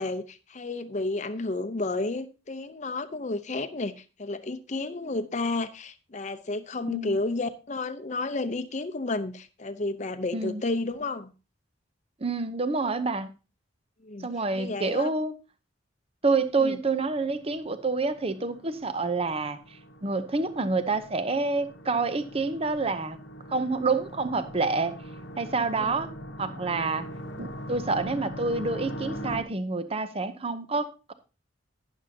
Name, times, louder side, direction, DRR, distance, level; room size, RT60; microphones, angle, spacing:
voice 1, 0.0-3.9 4.2-11.3 14.0-14.3 14.5-15.1 16.6-16.8 25.8-25.9, left 2 dB, 35° left, 0.7 m, -31 dB
voice 2, 6.9-7.2 10.3-10.6 12.2-13.3 14.2-15.3 16.2-23.2 23.5-24.9 25.4-26.1 26.4-27.1 27.4-31.1, right 3 dB, 30° right, 0.7 m, -28 dB
sound 1, 16.4-29.4, equal, 70° left, 1.0 m, -41 dB
11.5 x 9.9 x 2.8 m
head